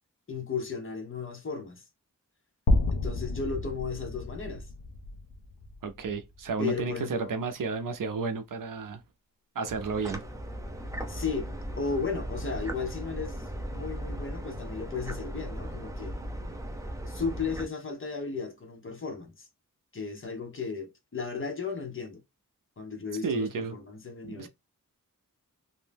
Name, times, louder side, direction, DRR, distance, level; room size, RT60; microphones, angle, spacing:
voice 1, 0.3-1.8 2.9-4.7 6.6-7.4 11.1-13.5 13.7-16.1 17.1-19.5 19.9-22.2 22.8-24.5, left 5 dB, 35° left, 0.8 m, -35 dB
sound 1, 2.7-6.9, left 2 dB, 75° left, 0.6 m, -31 dB
voice 2, 5.8-9.0 9.6-10.2 23.2-23.8 24.2-24.5, right 4 dB, 70° right, 0.5 m, -32 dB
sound 2, 9.7-17.7, equal, 10° right, 0.5 m, -37 dB
2.7 x 2.0 x 3.3 m
wide cardioid pair, 95°, 34 cm